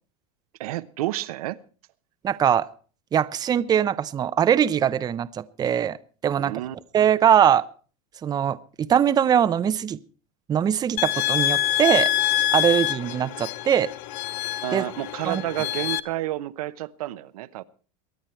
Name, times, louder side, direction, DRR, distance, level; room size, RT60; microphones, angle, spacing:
voice 1, 0.6-1.6 6.4-6.8 14.6-17.6, right 15 dB, 85° right, 12 dB, 0.9 m, -30 dB
voice 2, 2.2-2.7 3.1-6.0 6.2-6.5 6.9-7.7 8.2-10.0 10.5-12.1 12.5-13.9 14.7-14.8 15.2-15.4, right 9 dB, 20° right, 13 dB, 0.6 m, -21 dB
sound 1, 11.0-16.0, left 14 dB, 60° left, 0.8 m, -26 dB
23.5 x 9.2 x 4.5 m, 0.40 s
supercardioid pair, 130°, 18 cm